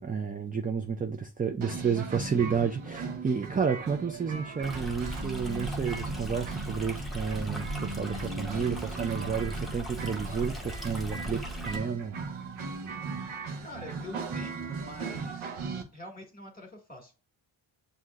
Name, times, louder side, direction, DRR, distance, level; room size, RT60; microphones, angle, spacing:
voice 1, 0.0-12.2, right 6 dB, 20° right, 0.3 m, -31 dB
sound 1, 1.6-15.8, right 4 dB, 90° right, 0.9 m, -38 dB
Stream, 4.6-11.8, equal, ahead, 0.9 m, -38 dB
voice 2, 13.6-15.5 15.9-17.1, left 1 dB, 20° left, 1.6 m, -45 dB
7.4 x 2.7 x 2.4 m
wide cardioid pair, 95°, 47 cm